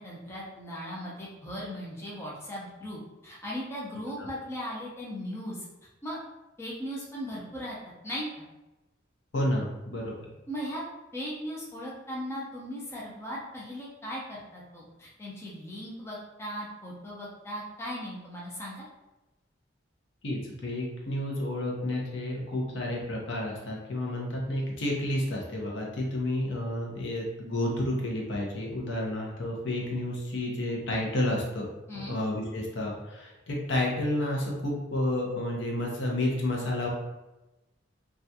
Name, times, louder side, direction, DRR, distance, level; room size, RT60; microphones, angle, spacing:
voice 1, 0.0-5.7 6.0-6.2 6.6-7.8 8.0-8.3 10.5-10.8 11.1-18.8 31.9-32.2, equal, 15° left, -5 dB, 0.4 m, -38 dB
voice 2, 9.3-10.1 20.2-31.6 31.9-36.9, left 1 dB, 65° left, -2 dB, 0.6 m, -30 dB
2.4 x 2.2 x 2.6 m, 1.0 s
head